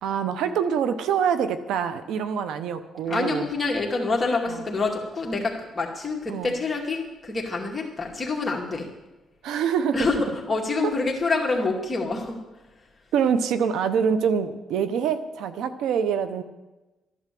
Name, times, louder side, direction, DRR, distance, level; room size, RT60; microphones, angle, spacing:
voice 1, 0.0-3.5 4.4-4.6 6.3-6.6 9.4-10.1 10.8-10.9 13.1-16.4, right 7 dB, 85° right, 11 dB, 0.9 m, -25 dB
voice 2, 3.1-8.9 9.9-10.2 10.5-12.4, left 3 dB, 25° left, -1 dB, 2.3 m, -26 dB
13.5 x 11.0 x 7.6 m, 1.1 s
cardioid pair, 90°, 0 cm